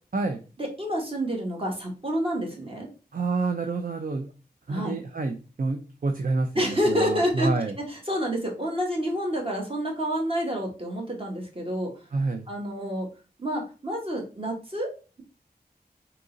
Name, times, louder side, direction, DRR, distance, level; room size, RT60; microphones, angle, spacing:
voice 1, 0.6-2.9 4.7-5.0 6.5-7.5 7.8-11.9 12.5-13.1 13.4-14.9, equal, 35° right, 0 dB, 1.3 m, -28 dB
voice 2, 3.1-4.3 4.7-7.7 12.1-12.4, right 3 dB, 55° right, 5 dB, 0.5 m, -28 dB
3.7 x 2.9 x 3.9 m, 0.35 s
wide cardioid pair, 65°, 17 cm